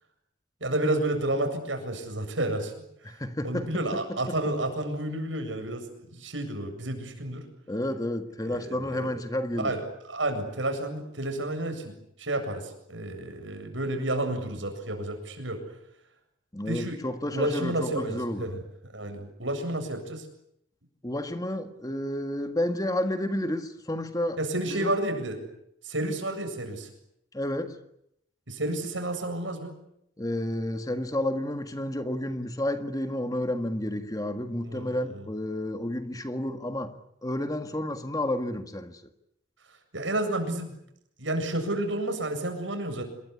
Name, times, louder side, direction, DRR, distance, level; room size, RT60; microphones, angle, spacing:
voice 1, 0.6-2.7 3.0-7.4 8.4-9.2 9.6-15.6 16.7-17.0 17.3-20.3 24.4-25.4 25.8-26.9 28.5-29.7 34.6-35.2 39.9-40.8 41.2-43.0, right 1 dB, 85° right, 7.8 m, -31 dB
voice 2, 3.0-3.8 4.3-4.4 7.7-9.8 16.5-18.5 21.0-24.4 24.7-25.0 27.3-27.8 30.2-36.9 37.2-39.0, left 1 dB, 20° left, 1.7 m, -31 dB
27.0 x 22.5 x 9.9 m
head